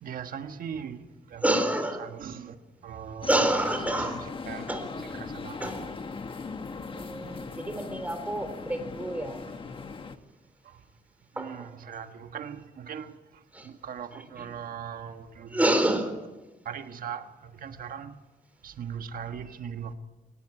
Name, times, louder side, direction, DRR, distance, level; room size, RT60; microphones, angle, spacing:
voice 1, 0.0-1.4 2.0-2.6 2.8-3.3 3.9-5.9 10.6-10.8 11.3-15.8 16.6-18.2 18.6-19.9, right 7 dB, 75° right, 1.4 m, -40 dB
voice 2, 1.4-2.1 3.2-4.3 4.7-5.0 5.6-5.9 6.2-6.3 6.9-9.4 11.4-11.7 13.5-13.7 14.1-14.5 15.5-16.2, right 1 dB, 10° right, 4.1 m, -28 dB
sound 1, 3.2-10.2, left 4 dB, 35° left, 1.5 m, -39 dB
23.0 x 19.0 x 10.0 m
cardioid pair, 120°, 15 cm